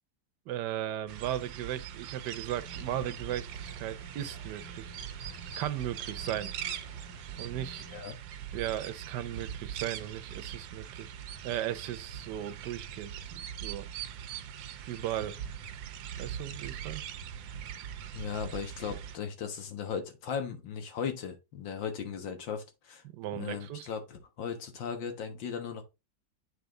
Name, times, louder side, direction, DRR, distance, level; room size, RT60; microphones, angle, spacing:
voice 1, 0.5-4.9 5.5-6.5 7.4-7.8 8.5-11.1 11.4-13.9 14.9-15.4 16.2-17.0 23.0-23.9, right 12 dB, 70° right, 1.3 m, -36 dB
sound 1, 1.1-19.2, right 9 dB, 90° right, 1.5 m, -42 dB
sound 2, 2.5-8.0, right 3 dB, 30° left, 3.7 m, -51 dB
voice 2, 18.1-23.0 23.3-25.8, left 7 dB, 85° left, 2.0 m, -37 dB
8.3 x 4.2 x 3.7 m
omnidirectional pair, 2.0 m